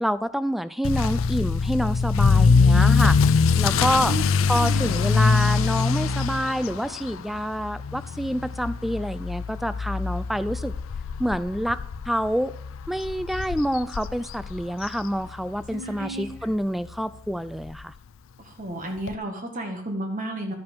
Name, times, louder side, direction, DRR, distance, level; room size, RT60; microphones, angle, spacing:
voice 1, 0.0-4.2 4.5-10.7 11.2-11.8 12.1-12.5 12.9-17.9, equal, ahead, 15 dB, 0.3 m, -27 dB
Motor vehicle (road) / Accelerating revving vroom, 0.8-15.7 16.0-16.4 16.9-17.0 17.3-17.4 17.7-17.8 19.1-19.2, left 5 dB, 75° left, 0.4 m, -23 dB
voice 2, 4.5-4.9 15.7-16.3 18.4-20.5, right 1 dB, 40° right, 2 dB, 1.4 m, -32 dB
12.5 x 5.6 x 5.2 m, 0.63 s
head